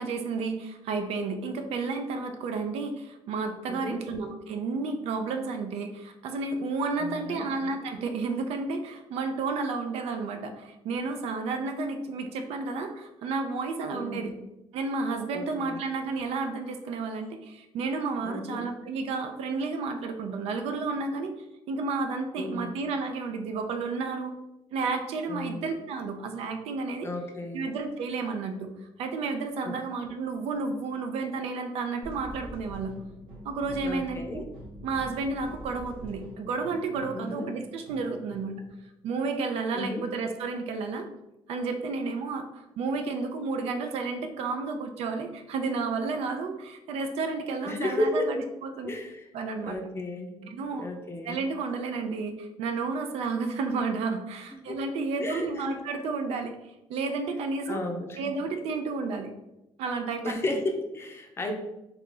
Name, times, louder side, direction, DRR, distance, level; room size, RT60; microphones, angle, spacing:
voice 1, 0.0-14.3 14.7-21.3 21.7-24.3 24.7-27.1 27.5-32.9 33.4-34.4 34.8-38.6 39.0-41.1 41.5-48.9 49.3-49.8 50.5-50.9 51.2-56.6 56.9-57.8 58.2-59.3 59.8-60.3, right 4 dB, 85° right, 6 dB, 0.4 m, -31 dB
voice 2, 3.7-4.0 7.0-7.5 13.9-14.4 15.3-15.8 18.2-18.7 22.4-22.7 25.3-25.7 27.0-27.7 29.6-29.7 33.8-34.4 37.1-37.5 39.7-40.1 47.6-48.3 48.8-49.2 49.6-51.4 54.5-54.8 55.2-55.8 57.7-58.3 60.2-61.5, left 1 dB, 25° left, 3 dB, 0.5 m, -33 dB
sound 1, 32.0-38.7, equal, 65° right, 0.9 m, -45 dB
2.8 x 2.4 x 3.7 m, 0.95 s
cardioid pair, 130°, 10 cm